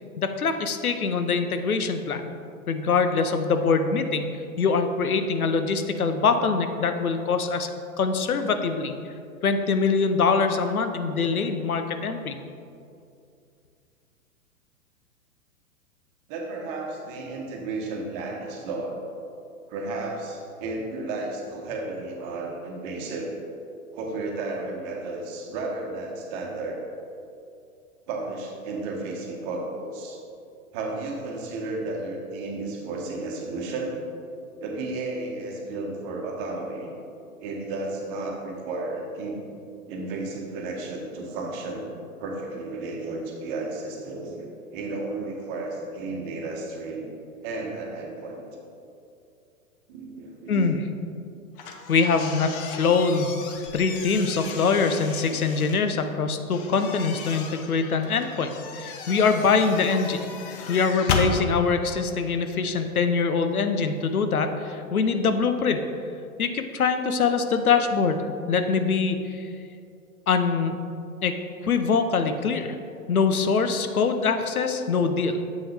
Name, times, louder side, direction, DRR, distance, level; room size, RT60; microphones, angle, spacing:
voice 1, 0.2-2.3 2.7-7.7 8.0-8.9 9.4-12.4 50.5-50.8 51.9-53.3 53.7-65.8 66.4-69.5 70.3-70.8 71.2-72.8 73.1-75.4, left 5 dB, 85° left, 8 dB, 0.7 m, -24 dB
voice 2, 16.3-19.0 19.7-23.3 23.9-26.8 28.1-30.2 30.7-34.0 34.6-36.9 37.4-39.4 39.9-41.9 42.2-47.1 47.4-48.5 49.9-50.8, right 2 dB, 35° right, 0 dB, 1.3 m, -33 dB
sound 1, 51.6-55.8 56.5-61.3, left 5 dB, 40° left, 0.8 m, -34 dB
7.8 x 5.8 x 3.3 m, 2.5 s
figure-of-eight pair, 110°, 42 cm